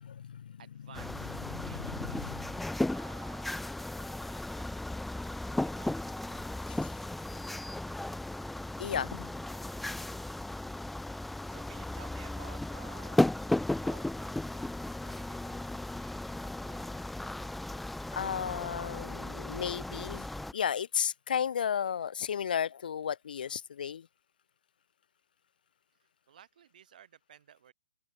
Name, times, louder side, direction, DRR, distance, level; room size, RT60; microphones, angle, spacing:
voice 1, 0.0-0.6 1.5-2.6 6.7-6.9 8.8-9.3 18.1-20.3 20.5-24.1, left 8 dB, 65° left, 1.2 m, -34 dB
voice 2, 0.6-2.3 2.9-3.5 4.0-4.7 5.6-6.5 7.0-8.2 11.5-13.4 13.7-14.7 15.0-17.4 25.9-27.7, right 9 dB, 55° right, 7.8 m, -57 dB
sound 1, 0.9-20.5, left 1 dB, ahead, 0.7 m, -35 dB
open air
hypercardioid pair, 155°, 5 cm